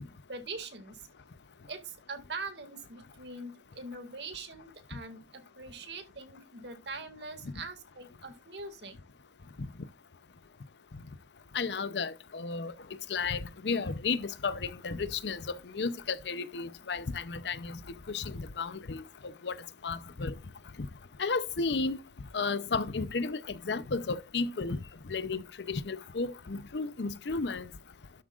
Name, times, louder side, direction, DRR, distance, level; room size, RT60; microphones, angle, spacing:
voice 1, 0.3-1.0 1.7-9.0, right 3 dB, 80° right, 2.1 m, -43 dB
voice 2, 11.5-12.7 13.1-15.4 15.7-17.8 18.1-19.0 19.4-19.6 19.8-20.3 21.2-22.0 22.3-23.4 23.6-24.8 25.1-27.6, left 4 dB, 80° left, 0.7 m, -33 dB
12.5 x 7.4 x 2.4 m
head